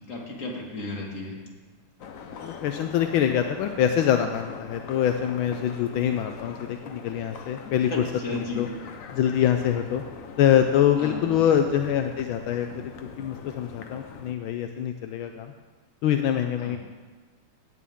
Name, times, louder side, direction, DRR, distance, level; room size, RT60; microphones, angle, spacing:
voice 1, 0.1-1.3 7.9-8.6 11.0-11.4 16.6-16.8, left 2 dB, 40° left, -2 dB, 2.4 m, -34 dB
sound 1, 2.0-14.3, left 6 dB, 60° left, 0.9 m, -42 dB
voice 2, 2.4-8.0 8.3-8.7 9.1-10.0 10.4-12.7 13.2-15.5 16.0-16.8, left 10 dB, 80° left, 6 dB, 1.4 m, -24 dB
16.5 x 9.3 x 3.6 m, 1.4 s
omnidirectional pair, 2.3 m